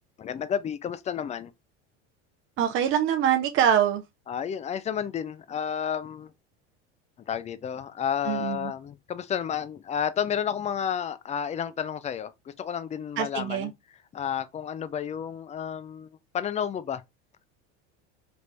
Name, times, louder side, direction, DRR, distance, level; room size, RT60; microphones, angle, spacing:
voice 1, 0.2-1.5 4.3-6.3 7.3-13.7 14.1-16.1 16.3-17.0, left 8 dB, 20° left, 0.3 m, -31 dB
voice 2, 2.6-4.0 8.3-8.7 13.2-13.7, right 9 dB, 35° right, 0.6 m, -24 dB
3.4 x 2.5 x 3.2 m
hypercardioid pair, 90°, 35 cm